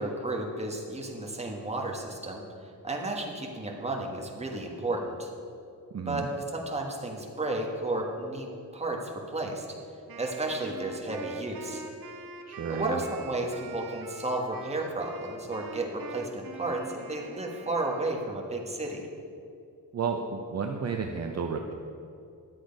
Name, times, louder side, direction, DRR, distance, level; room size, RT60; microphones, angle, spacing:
voice 1, 0.0-2.4 2.8-5.3 6.1-9.7 10.1-11.8 12.7-19.0, right 2 dB, 20° right, 0 dB, 1.3 m, -33 dB
voice 2, 5.9-6.3 12.5-13.0 19.9-21.7, right 5 dB, 45° right, 3 dB, 0.6 m, -32 dB
Wind instrument woodwind instrument, 10.1-18.5, right 4 dB, 70° right, 1.1 m, -44 dB
11.0 x 7.8 x 5.2 m, 2.5 s
wide cardioid pair, 150°, 36 cm